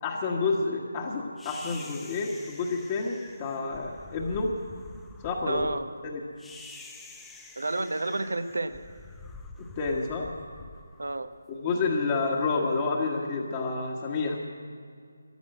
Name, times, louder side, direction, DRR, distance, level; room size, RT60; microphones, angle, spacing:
voice 1, 0.0-4.5 5.2-5.7 6.0-6.2 9.8-10.3 11.5-14.4, left 4 dB, 25° left, -2 dB, 1.3 m, -29 dB
sound 1, 1.4-11.7, left 3 dB, 5° left, 0.7 m, -47 dB
voice 2, 5.5-5.9 7.6-8.8 11.0-11.3, right 2 dB, 75° right, 11 dB, 0.9 m, -30 dB
14.5 x 10.5 x 7.8 m, 2.2 s
figure-of-eight pair, 160°, 0 cm